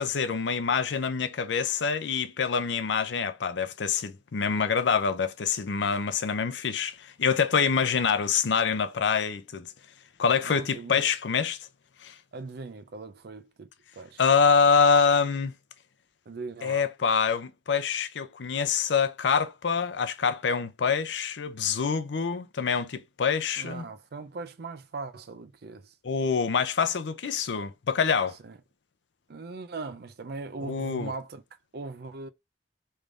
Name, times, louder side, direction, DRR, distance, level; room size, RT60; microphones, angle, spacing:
voice 1, 0.0-9.7 10.2-11.6 12.0-12.1 14.2-15.5 16.6-23.9 26.0-28.4 30.7-31.1, left 6 dB, 80° left, 0.5 m, -25 dB
voice 2, 10.4-11.1 12.3-14.2 16.3-16.9 23.6-25.9 28.4-28.6 29.3-31.4 31.7-32.3, right 3 dB, 60° right, 0.5 m, -39 dB
3.4 x 3.3 x 2.4 m
head